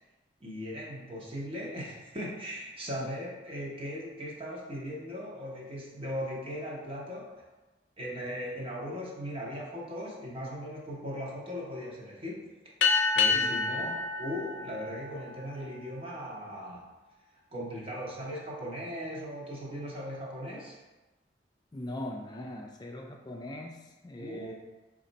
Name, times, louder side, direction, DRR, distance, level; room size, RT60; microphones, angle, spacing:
voice 1, 0.4-7.5 8.0-12.5 13.1-16.9 17.5-20.8 24.2-24.5, equal, 30° right, -4 dB, 0.9 m, -38 dB
sound 1, 12.8-15.8, left 5 dB, 90° left, 0.5 m, -28 dB
voice 2, 13.3-14.0 21.7-24.5, left 1 dB, 25° left, 1 dB, 0.4 m, -41 dB
4.2 x 2.5 x 4.0 m, 1.1 s
head